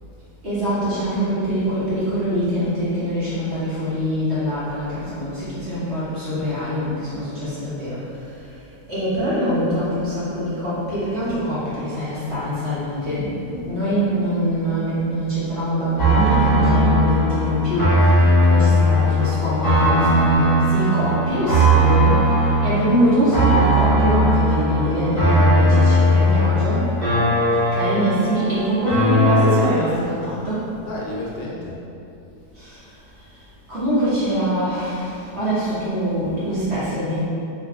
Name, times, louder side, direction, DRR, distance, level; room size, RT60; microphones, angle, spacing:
voice 1, 0.4-8.0 8.9-22.2 22.6-26.9 27.7-30.7 32.6-32.8 33.7-37.2, equal, 45° right, -12 dB, 1.2 m, -23 dB
sound 1, 16.0-29.6, equal, 15° left, 1.1 m, -18 dB
sound 2, 16.6-19.9, left 1 dB, 40° left, 0.5 m, -34 dB
voice 2, 18.3-19.8 30.7-31.8, left 1 dB, 75° left, -4 dB, 1.1 m, -33 dB
2.7 x 2.6 x 3.6 m, 2.7 s
omnidirectional pair, 1.6 m